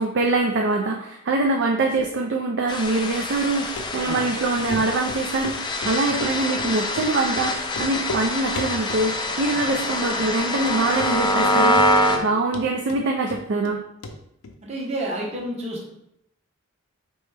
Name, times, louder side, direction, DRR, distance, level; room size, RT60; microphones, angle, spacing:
voice 1, 0.0-13.8, right 2 dB, 55° right, 2 dB, 0.4 m, -24 dB
sound 1, 2.7-12.2, left 1 dB, 20° left, 0.4 m, -25 dB
Run, 3.8-3.9 4.2-4.3 4.7-4.8 5.1-5.6 5.8-6.7 7.0-7.1 7.4-7.5 7.7-8.3 8.6-9.1 9.4-9.8 10.1-10.2 10.7-10.8 11.0-11.5 11.8-12.3 12.5-13.8 14.0-14.2 14.4-14.5, left 2 dB, 75° left, 0.5 m, -34 dB
voice 2, 14.6-15.9, right 1 dB, 30° right, -2 dB, 0.8 m, -30 dB
4.3 x 3.0 x 3.2 m, 0.76 s
head